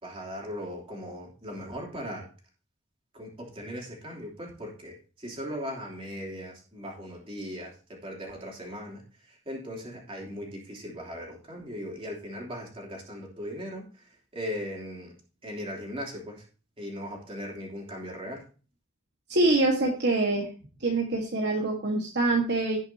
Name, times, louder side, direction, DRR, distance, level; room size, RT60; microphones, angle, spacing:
voice 1, 0.0-2.2 3.1-14.1 14.3-15.1 15.4-16.4 16.8-18.4, equal, 25° right, -1 dB, 3.1 m, -38 dB
voice 2, 19.3-20.5 20.8-22.8, right 2 dB, 50° right, 0 dB, 1.5 m, -25 dB
17.5 x 6.3 x 2.8 m, 0.38 s
head